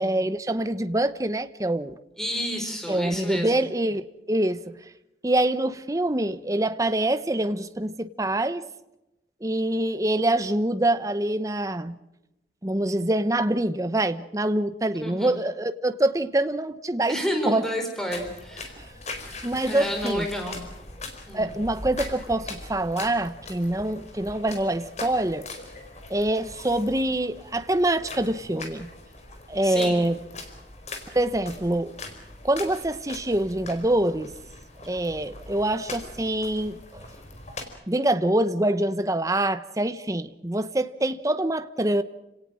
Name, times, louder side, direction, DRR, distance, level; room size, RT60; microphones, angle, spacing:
voice 1, 0.0-2.0 2.9-4.6 5.2-8.6 9.4-11.9 12.6-17.2 17.5-17.6 19.4-20.3 21.3-25.5 26.1-28.9 29.5-30.2 31.1-31.9 32.4-34.3 34.9-36.8 37.9-42.0, right 1 dB, 20° right, 0.9 m, -25 dB
voice 2, 2.2-3.6 15.0-15.4 17.1-18.7 19.7-20.7 21.3-21.5 29.6-30.0, equal, 5° left, 4.8 m, -30 dB
sound 1, 18.1-37.6, left 3 dB, 40° left, 4.5 m, -41 dB
29.5 x 18.5 x 7.6 m
head